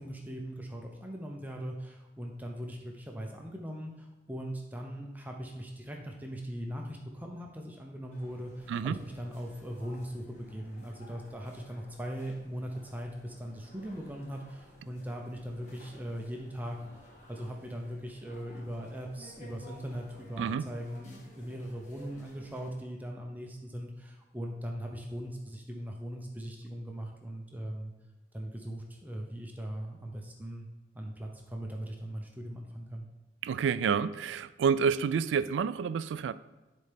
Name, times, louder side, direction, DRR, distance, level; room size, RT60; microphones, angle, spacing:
voice 1, 0.0-16.8 17.3-27.9 28.3-30.7 30.9-33.1, equal, 10° right, 1 dB, 0.6 m, -40 dB
sound 1, 8.1-22.7, equal, 40° left, 1.5 m, -55 dB
voice 2, 8.7-9.0 20.4-20.6 33.4-36.3, right 6 dB, 90° right, 15 dB, 0.3 m, -29 dB
10.5 x 4.3 x 3.4 m, 1.1 s
head